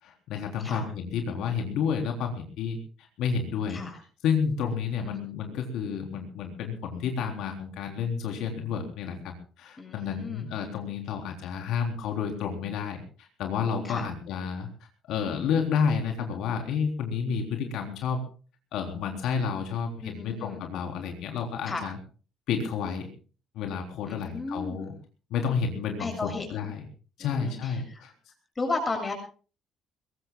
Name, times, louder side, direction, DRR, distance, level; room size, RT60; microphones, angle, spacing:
voice 1, 0.0-3.8 4.2-14.7 15.1-18.2 18.7-22.0 22.5-23.1 23.6-24.9 25.3-26.9 27.2-28.1, left 6 dB, 70° left, 4 dB, 3.8 m, -30 dB
voice 2, 4.9-5.2 9.8-10.5 13.8-14.1 20.0-20.6 21.7-21.9 24.1-24.9 26.0-26.7 27.2-28.0 28.6-29.1, left 3 dB, 15° left, 3 dB, 7.2 m, -34 dB
23.5 x 21.5 x 2.4 m, 0.38 s
cardioid pair, 170°, 0 cm